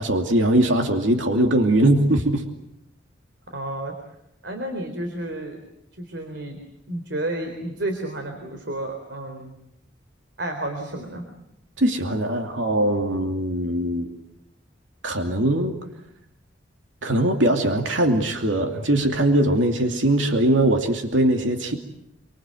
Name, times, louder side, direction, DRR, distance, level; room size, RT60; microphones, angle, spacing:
voice 1, 0.0-2.4 11.8-14.1 15.0-15.7 17.0-21.8, right 1 dB, 80° right, 4 dB, 2.7 m, -21 dB
voice 2, 3.5-3.9 4.4-5.6 6.0-6.6 6.9-9.5 10.4-11.2, right 1 dB, 65° right, 4 dB, 3.9 m, -31 dB
27.5 x 25.0 x 7.8 m, 0.80 s
head